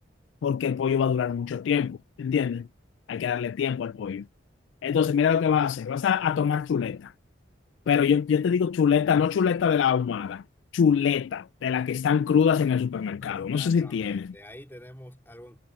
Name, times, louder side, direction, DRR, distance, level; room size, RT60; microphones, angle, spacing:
voice 1, 0.4-2.7 3.1-4.3 4.8-7.1 7.9-10.4 10.7-14.3, left 7 dB, 85° left, 0.3 m, -24 dB
voice 2, 13.2-15.6, equal, 10° left, 3.6 m, -47 dB
head